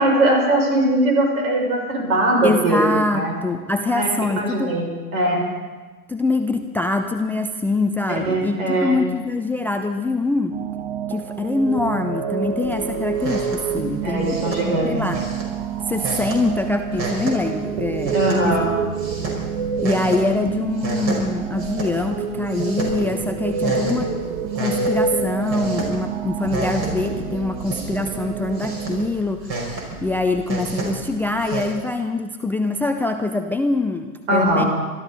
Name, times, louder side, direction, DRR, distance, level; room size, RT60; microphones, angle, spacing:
voice 1, 0.0-2.8 3.1-3.4 3.9-4.1 4.4-5.4 8.3-9.0 14.0-15.0 18.1-18.7 26.8-27.0 34.3-34.7, right 1 dB, 65° right, 0 dB, 6.1 m, -20 dB
voice 2, 2.4-4.8 6.1-10.6 11.1-15.2 15.9-18.6 19.8-24.1 24.6-29.4 30.0-34.6, left 2 dB, 5° left, 6 dB, 0.4 m, -24 dB
sound 1, 10.5-29.1, right 6 dB, 50° right, 1.3 m, -28 dB
sound 2, 12.6-31.7, right 2 dB, 30° right, 4.9 m, -31 dB
26.0 x 13.0 x 4.0 m, 1.3 s
hypercardioid pair, 100°, 44 cm